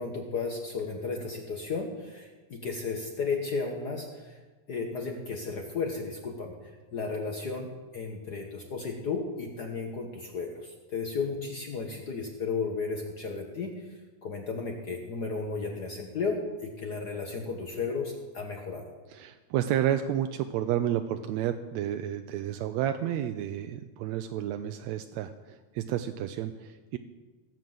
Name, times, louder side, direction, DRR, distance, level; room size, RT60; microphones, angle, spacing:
voice 1, 0.0-4.4 4.7-6.6 6.9-18.8, left 4 dB, 60° left, 3 dB, 1.0 m, -34 dB
voice 2, 19.1-27.0, right 11 dB, 80° right, 8 dB, 1.7 m, -31 dB
16.0 x 7.3 x 7.7 m, 1.3 s
omnidirectional pair, 3.4 m